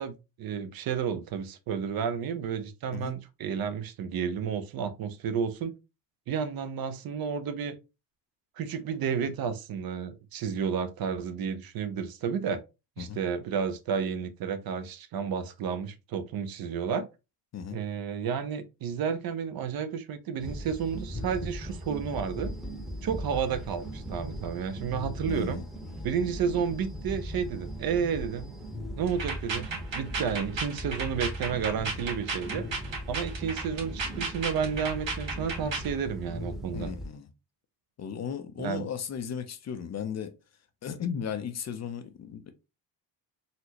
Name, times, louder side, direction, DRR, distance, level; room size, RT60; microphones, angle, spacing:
voice 1, 0.0-5.7 6.3-7.8 8.6-12.6 13.0-17.1 17.7-22.5 23.0-25.6 26.0-28.6 29.0-32.7 33.1-36.9 38.6-38.9, right 7 dB, 55° right, 0.6 m, -31 dB
sound 1, 20.4-37.1, equal, ahead, 0.8 m, -38 dB
voice 2, 25.3-26.1 36.7-37.3 38.0-40.3 40.8-42.5, left 7 dB, 40° left, 0.5 m, -36 dB
sound 2, 29.1-35.9, right 4 dB, 85° right, 1.7 m, -34 dB
4.1 x 2.0 x 2.8 m
cardioid pair, 110°, 44 cm